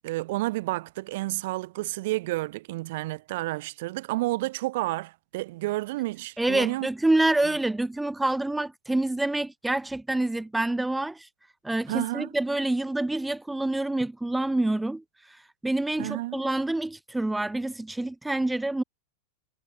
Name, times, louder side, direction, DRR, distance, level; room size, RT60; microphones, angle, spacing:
voice 1, 0.0-6.9 11.9-12.3 16.0-16.4, right 19 dB, 50° right, 0.6 m, -30 dB
voice 2, 6.4-11.3 11.6-18.8, right 2 dB, 5° right, 0.3 m, -27 dB
figure-of-eight pair, 90°, 0 cm